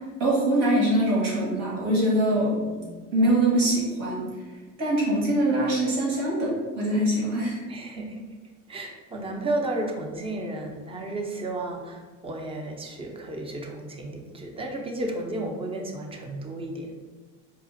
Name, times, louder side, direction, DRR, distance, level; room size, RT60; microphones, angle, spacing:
voice 1, 0.2-2.6 3.1-4.3 4.8-7.6, right 1 dB, 80° right, -4 dB, 1.5 m, -23 dB
voice 2, 2.6-3.0 7.7-8.2 8.7-16.9, right 2 dB, 15° right, 2 dB, 0.5 m, -33 dB
4.8 x 2.4 x 2.6 m, 1.4 s
supercardioid pair, 110°, 33 cm